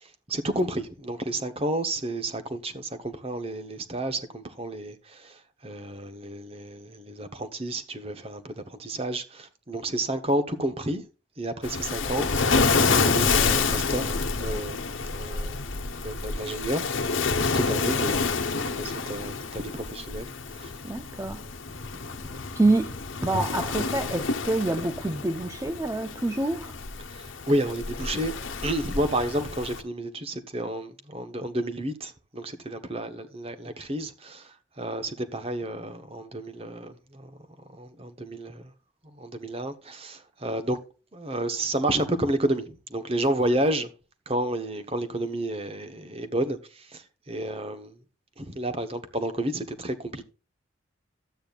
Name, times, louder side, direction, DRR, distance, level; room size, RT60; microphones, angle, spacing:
voice 1, 0.0-11.0 11.4-14.8 15.1-15.6 16.0-20.8 21.9-22.5 27.1-28.4 28.6-37.4 37.7-38.7 39.0-40.8 41.1-43.9 44.3-48.0 48.4-50.2, right 1 dB, 30° right, 1.1 m, -31 dB
Waves surf, 11.6-29.8, left 4 dB, 75° left, 1.1 m, -28 dB
voice 2, 20.8-21.5 22.5-26.7, right 2 dB, 15° right, 0.5 m, -27 dB
12.5 x 8.7 x 2.5 m
head